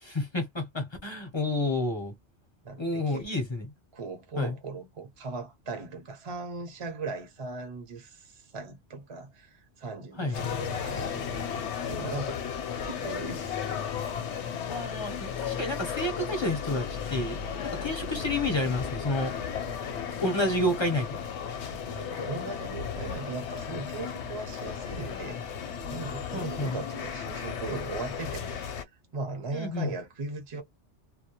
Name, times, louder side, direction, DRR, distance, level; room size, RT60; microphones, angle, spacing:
voice 1, 0.0-2.1 2.8-3.7 4.4-4.5 10.2-10.5 14.7-19.3 20.2-21.1 26.3-26.8 29.5-29.9, left 1 dB, 30° left, 0.6 m, -30 dB
voice 2, 2.6-3.3 3.9-12.4 12.8-13.6 21.7-25.6 25.9-30.6, right 3 dB, 35° right, 0.6 m, -38 dB
sound 1, 10.3-28.8, left 7 dB, 75° left, 0.9 m, -35 dB
2.1 x 2.1 x 2.8 m
omnidirectional pair, 1.2 m